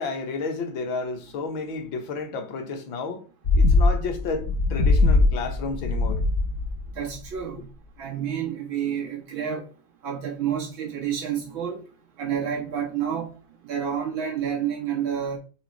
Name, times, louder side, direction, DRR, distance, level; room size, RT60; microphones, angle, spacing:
voice 1, 0.0-3.2 3.5-4.5 4.7-6.2, left 4 dB, 75° left, 1.8 m, -31 dB
sound 1, 3.4-6.9 7.2-7.3, left 2 dB, 40° left, 1.4 m, -21 dB
voice 2, 7.0-7.6 8.0-9.6 10.0-11.8 12.2-13.3 13.7-15.4, right 8 dB, 85° right, 2.6 m, -29 dB
5.0 x 4.5 x 4.5 m
omnidirectional pair, 2.1 m